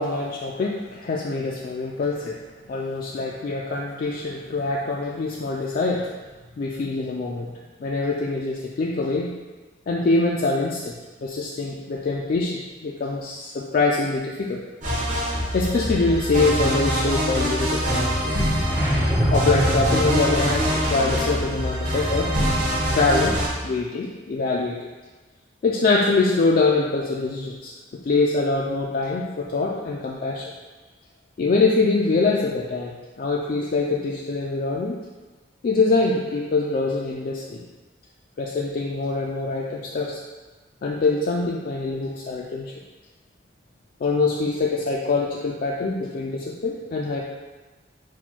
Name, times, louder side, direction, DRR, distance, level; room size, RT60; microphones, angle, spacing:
voice 1, 0.0-2.4 2.7-6.1 6.6-7.5 7.8-9.3 9.9-10.9 11.2-14.6 15.5-18.5 19.3-22.3 22.9-24.9 25.6-27.7 28.0-30.5 31.4-35.0 35.6-37.6 38.4-40.2 40.8-42.7 44.0-47.2, left 3 dB, 50° left, -3 dB, 0.3 m, -24 dB
sound 1, 14.8-23.5, equal, 45° right, 0.9 m, -24 dB
sound 2, 18.6-20.8, equal, 10° right, 0.7 m, -24 dB
4.2 x 2.2 x 4.3 m, 1.3 s
head